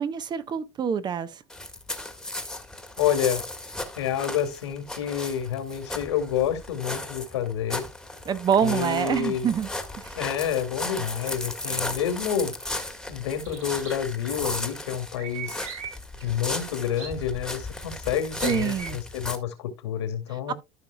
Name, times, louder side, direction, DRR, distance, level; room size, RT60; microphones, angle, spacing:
voice 1, 0.0-1.4 8.2-9.7 9.9-10.2 18.4-19.0 20.5-20.6, right 8 dB, 30° right, 0.9 m, -26 dB
sound 1, 1.5-19.4, left 2 dB, 5° left, 1.6 m, -35 dB
voice 2, 3.0-3.4 4.0-7.9 8.6-9.5 10.2-12.5 13.1-15.6 16.2-20.5, left 9 dB, 85° left, 2.3 m, -28 dB
sound 2, 13.4-13.9 15.1-15.9 16.2-17.4 18.4-18.9, right 7 dB, 55° right, 4.8 m, -39 dB
14.0 x 5.6 x 2.2 m
supercardioid pair, 105°, 14 cm